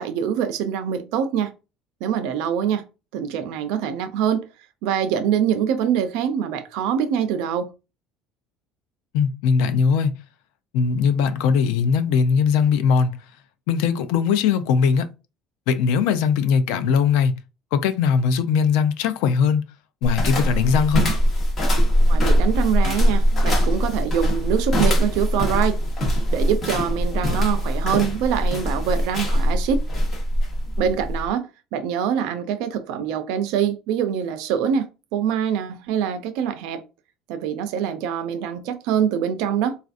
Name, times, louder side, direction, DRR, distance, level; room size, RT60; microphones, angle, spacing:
voice 1, 0.0-1.5 2.0-2.8 3.1-4.5 4.8-7.7 22.1-25.8 26.3-29.8 30.8-36.8 37.3-39.8, right 8 dB, 75° right, 0.5 m, -24 dB
voice 2, 9.1-10.1 10.7-13.2 13.7-15.1 15.7-17.3 17.7-19.7 20.0-21.1, left 6 dB, 80° left, 0.5 m, -20 dB
sound 1, 20.0-31.3, equal, 30° left, 1.2 m, -21 dB
4.1 x 2.5 x 2.5 m
cardioid pair, 160°, 0 cm